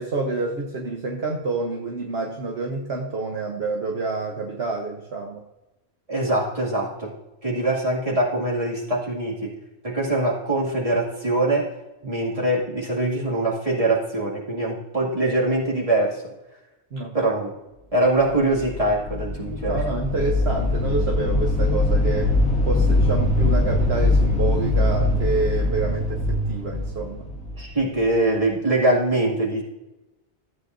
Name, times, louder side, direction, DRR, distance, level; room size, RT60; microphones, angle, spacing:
voice 1, 0.0-5.4 12.0-12.2 16.9-17.2 19.7-22.3 22.7-27.2, right 3 dB, 65° right, 0 dB, 1.2 m, -28 dB
voice 2, 6.1-7.1 7.4-9.6 9.8-11.7 12.1-16.2 17.1-17.5 17.9-19.8 27.6-29.6, right 2 dB, 30° right, -4 dB, 2.3 m, -23 dB
sound 1, 18.4-28.2, left 2 dB, 5° left, 1.6 m, -22 dB
14.0 x 8.3 x 2.6 m, 1.0 s
omnidirectional pair, 1.2 m